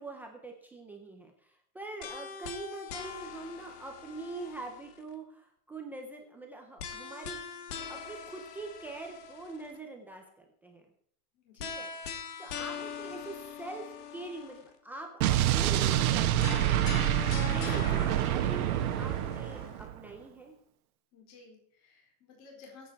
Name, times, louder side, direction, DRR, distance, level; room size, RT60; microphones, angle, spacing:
voice 1, 0.0-1.3 1.7-5.4 5.7-7.4 7.9-10.8 11.6-11.9 12.4-13.8 14.1-18.6 18.9-20.5, right 2 dB, 5° right, 1 dB, 0.4 m, -44 dB
sound 1, 2.0-5.1 6.8-9.8 11.6-14.8 16.4-19.8, left 7 dB, 85° left, 2.6 m, -42 dB
voice 2, 11.3-11.7 21.1-22.9, left 4 dB, 35° left, 0 dB, 4.4 m, -54 dB
Explosion, 15.2-20.0, right 12 dB, 65° right, 1.5 m, -27 dB
22.0 x 8.4 x 4.5 m, 0.63 s
supercardioid pair, 175°, 46 cm